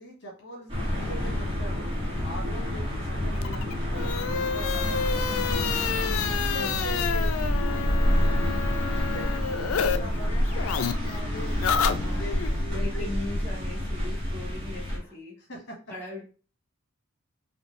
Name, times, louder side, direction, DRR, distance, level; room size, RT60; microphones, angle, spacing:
voice 1, 0.0-1.9 2.2-5.4 6.0-13.4 15.5-15.8, equal, 55° left, 0 dB, 1.5 m, -42 dB
sound 1, 0.7-15.0, equal, 25° right, 1.8 m, -28 dB
sound 2, 3.4-10.0 10.2-12.5, left 7 dB, 90° left, 0.4 m, -30 dB
voice 2, 6.6-7.1 12.0-12.3 12.6-15.4 15.9-16.2, left 2 dB, 10° left, -4 dB, 1.1 m, -39 dB
4.2 x 3.1 x 3.2 m, 0.36 s
head